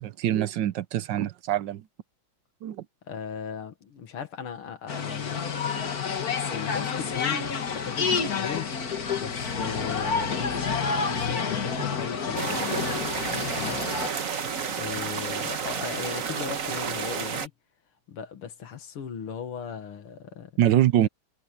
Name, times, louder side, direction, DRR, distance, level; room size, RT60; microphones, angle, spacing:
voice 1, 0.0-1.8 2.6-2.8 20.6-21.1, right 12 dB, 70° right, 1.2 m, -24 dB
voice 2, 3.0-5.5 6.5-8.7 9.2-13.1 13.6-14.1 14.8-17.5 18.1-20.6, left 7 dB, 85° left, 2.6 m, -38 dB
sound 1, 4.9-14.1, left 5 dB, 45° left, 2.1 m, -29 dB
sound 2, 12.4-17.5, right 6 dB, 45° right, 1.4 m, -31 dB
omnidirectional pair, 2.3 m